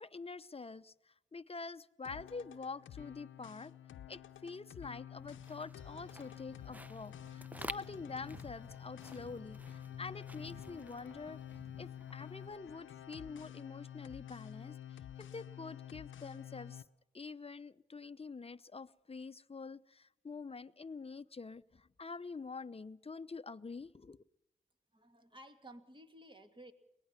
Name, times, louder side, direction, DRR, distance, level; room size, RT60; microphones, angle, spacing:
voice 1, 0.0-3.7 4.1-11.4 11.8-16.8 17.1-24.2, left 4 dB, 30° left, 14 dB, 0.8 m, -46 dB
sound 1, 2.0-16.8, left 10 dB, 85° left, 0.8 m, -50 dB
sound 2, 5.2-12.5, right 1 dB, 10° right, 0.8 m, -51 dB
voice 2, 24.9-26.7, right 1 dB, 25° right, 6 dB, 2.5 m, -55 dB
23.0 x 19.5 x 5.9 m, 0.86 s
cardioid pair, 50°, 19 cm